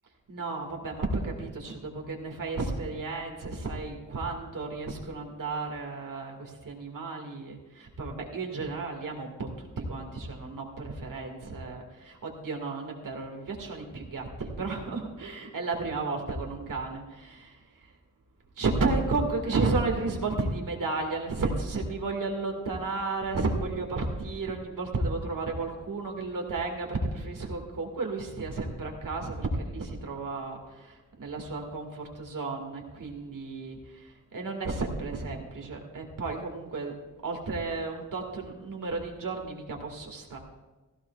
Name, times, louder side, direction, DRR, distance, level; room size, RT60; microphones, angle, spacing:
voice 1, 0.3-17.9 18.6-36.9 37.2-40.4, right 3 dB, 85° right, 1 dB, 2.0 m, -33 dB
16.0 x 15.0 x 2.4 m, 1.2 s
wide cardioid pair, 90°, 32 cm